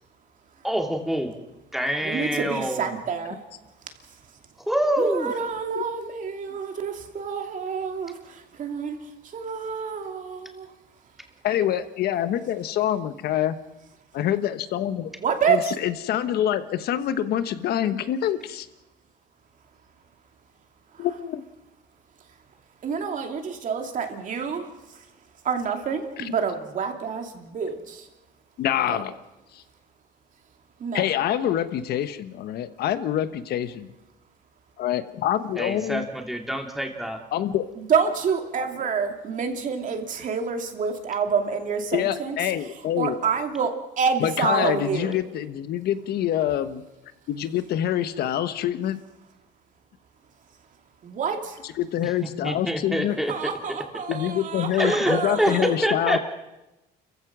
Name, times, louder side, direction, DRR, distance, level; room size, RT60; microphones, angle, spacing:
voice 1, 0.6-1.3 1.7-2.9 4.7-5.3 35.6-37.2 52.4-53.3 54.8-56.2, equal, ahead, 2 dB, 2.9 m, -25 dB
voice 2, 2.0-3.4 5.0-9.0 9.3-10.7 15.2-15.6 20.9-21.1 22.8-24.7 25.4-28.1 28.9-29.0 30.8-31.0 37.8-42.4 43.0-45.2 51.0-51.6 53.3-55.8, right 6 dB, 50° right, 4 dB, 2.8 m, -28 dB
voice 3, 11.4-13.6 14.1-15.1 15.5-18.7 21.0-21.4 26.2-26.3 28.6-29.1 29.5-29.6 30.9-33.9 34.8-36.0 37.3-37.7 41.9-43.2 44.2-46.8 47.3-49.0 51.6-53.2 54.1-56.2, left 11 dB, 70° left, 11 dB, 1.2 m, -26 dB
29.5 x 15.5 x 6.2 m, 1.0 s
cardioid pair, 110°, 17 cm